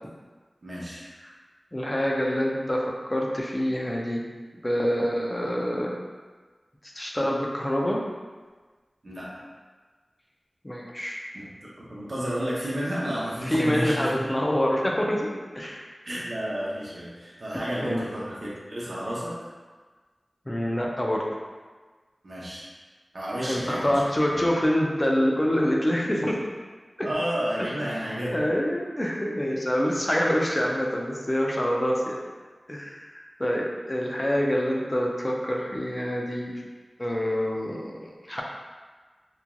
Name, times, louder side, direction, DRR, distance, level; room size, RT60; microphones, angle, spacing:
voice 1, 0.6-1.0 9.0-9.3 11.3-14.2 16.0-19.4 22.2-22.7 23.1-24.4 27.0-28.5, equal, 65° right, -7 dB, 0.6 m, -31 dB
voice 2, 1.7-4.2 4.6-6.0 6.9-8.0 10.6-11.2 13.5-15.3 15.5-15.8 17.8-18.1 20.5-21.3 23.4-26.4 27.0-27.1 27.6-27.7 28.3-32.2 32.7-36.6 37.0-38.4, equal, 25° left, -1 dB, 0.5 m, -26 dB
3.0 x 2.4 x 2.2 m, 1.4 s
wide cardioid pair, 55°, 0 cm